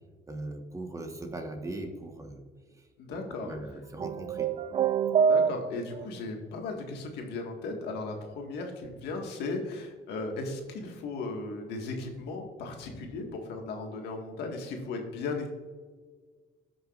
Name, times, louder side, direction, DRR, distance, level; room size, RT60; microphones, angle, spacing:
voice 1, 0.3-2.4 3.3-4.5, right 2 dB, 20° right, 4 dB, 1.4 m, -39 dB
voice 2, 3.0-3.5 5.2-15.5, left 3 dB, 80° left, 2 dB, 1.8 m, -36 dB
sound 1, 4.0-6.0, right 7 dB, 35° right, 0.4 m, -26 dB
16.5 x 6.2 x 2.5 m, 1.5 s
cardioid pair, 110°, 17 cm